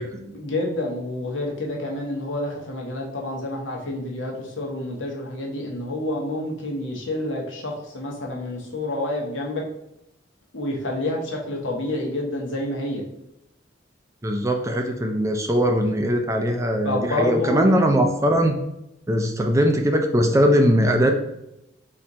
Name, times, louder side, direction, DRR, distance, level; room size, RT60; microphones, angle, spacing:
voice 1, 0.3-9.6 10.5-13.0 16.8-17.9, left 1 dB, 85° left, -1 dB, 1.1 m, -28 dB
voice 2, 14.2-18.6 19.1-21.1, equal, 15° right, 4 dB, 0.4 m, -20 dB
4.3 x 2.5 x 4.1 m, 0.83 s
head